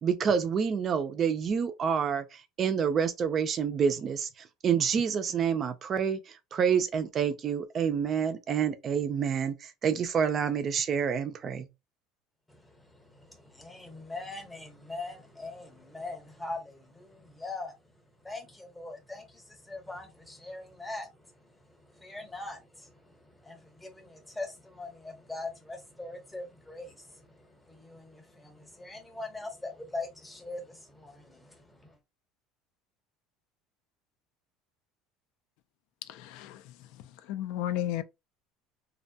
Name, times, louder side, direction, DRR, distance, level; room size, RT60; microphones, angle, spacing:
voice 1, 0.0-11.7, right 7 dB, 35° right, 0.4 m, -28 dB
voice 2, 13.0-17.7 18.2-21.1 22.0-22.9 23.4-27.3 27.7-31.9, left 2 dB, 10° left, 0.8 m, -41 dB
voice 3, 36.1-36.6 37.3-38.0, left 12 dB, 70° left, 0.3 m, -33 dB
2.5 x 2.1 x 2.7 m
cardioid pair, 140°, 0 cm